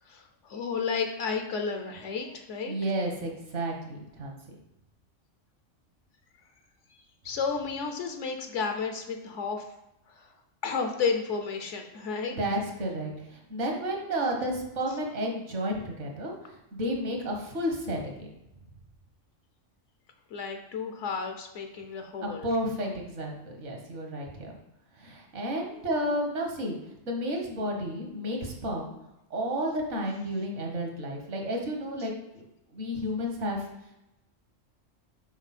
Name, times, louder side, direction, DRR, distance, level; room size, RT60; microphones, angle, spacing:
voice 1, 0.1-2.7 7.2-9.6 10.1-10.3 10.6-12.4 20.3-22.5, left 5 dB, 75° left, 5 dB, 1.0 m, -32 dB
voice 2, 2.7-4.6 12.3-18.3 22.2-24.5 25.0-26.8 27.1-28.9 29.3-32.4 32.7-33.7, equal, 65° right, 1 dB, 1.5 m, -32 dB
6.2 x 4.0 x 4.2 m, 0.90 s
omnidirectional pair, 1.3 m